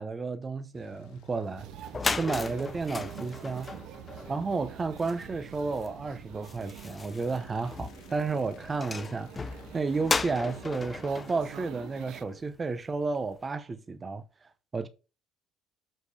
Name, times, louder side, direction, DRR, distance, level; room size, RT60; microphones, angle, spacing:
voice 1, 0.0-1.7 2.1-3.7 4.3-14.9, right 4 dB, 20° right, 0.7 m, -32 dB
sound 1, 0.7-11.9, left 3 dB, 80° left, 2.1 m, -55 dB
sound 2, 1.5-1.6 1.8-12.6, left 4 dB, 15° left, 0.5 m, -37 dB
sound 3, 1.6-12.2, right 12 dB, 60° right, 0.5 m, -47 dB
13.0 x 5.0 x 3.3 m
cardioid pair, 160°, 0 cm